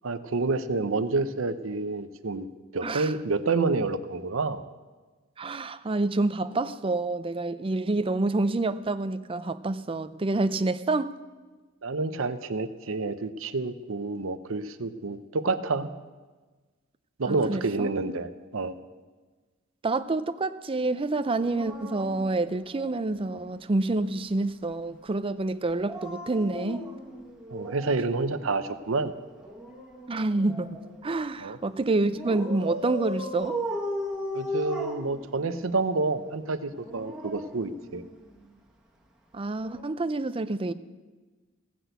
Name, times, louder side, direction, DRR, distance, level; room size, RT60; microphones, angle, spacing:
voice 1, 0.0-2.5 2.7-4.6 11.8-15.9 17.2-18.7 27.5-29.1 31.4-31.6 34.3-38.0, right 3 dB, 90° right, 0.7 m, -28 dB
voice 2, 2.8-3.1 5.4-11.2 17.3-17.9 19.8-26.8 30.1-33.6 39.3-40.7, right 2 dB, 25° right, 0.5 m, -28 dB
Dog, 21.4-23.2 25.7-28.1 29.4-31.0 32.2-35.7 36.7-38.4 39.6-39.8, equal, 5° right, 1.4 m, -37 dB
16.5 x 6.1 x 8.0 m
head